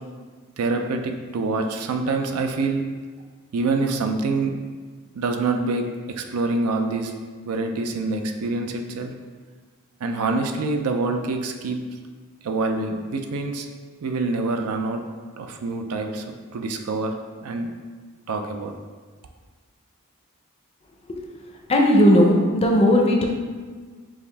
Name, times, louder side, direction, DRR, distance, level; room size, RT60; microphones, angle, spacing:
voice 1, 0.6-2.8 3.5-4.5 5.1-7.1 7.5-9.1 10.0-11.8 12.4-13.7 14.0-15.0 15.4-16.3 16.5-17.1 17.4-17.7 18.3-18.7, right 3 dB, 75° right, 5 dB, 0.4 m, -25 dB
voice 2, 21.7-23.2, equal, 25° left, 1 dB, 0.5 m, -17 dB
4.9 x 2.5 x 3.3 m, 1.5 s
head